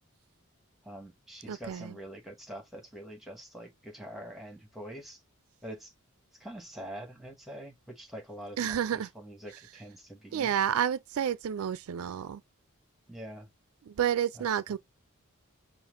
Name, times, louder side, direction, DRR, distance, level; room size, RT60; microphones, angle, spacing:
voice 1, 0.8-5.2 5.6-5.9 6.4-10.6 13.1-13.5 14.7-14.8, equal, ahead, 1.2 m, -45 dB
voice 2, 1.5-2.0 8.6-9.1 10.3-12.4 13.8-14.8, right 9 dB, 70° right, 0.4 m, -30 dB
5.7 x 2.4 x 3.5 m
head